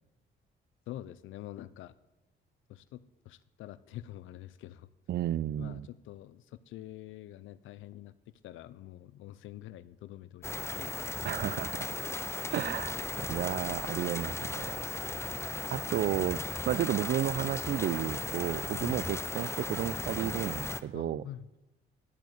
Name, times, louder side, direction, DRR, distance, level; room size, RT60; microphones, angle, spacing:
voice 1, 0.9-1.9 2.7-3.0 3.3-4.9 5.6-8.1 8.4-11.6 15.1-15.4 18.8-19.1 20.9-21.5, left 13 dB, 80° left, 15 dB, 0.5 m, -46 dB
voice 2, 5.1-5.9 11.2-12.0 12.5-14.9 15.7-21.2, right 11 dB, 55° right, 20 dB, 0.4 m, -32 dB
sound 1, 10.4-20.8, left 3 dB, 15° left, 0.5 m, -36 dB
11.0 x 6.5 x 8.1 m, 1.0 s
cardioid pair, 90°, 20 cm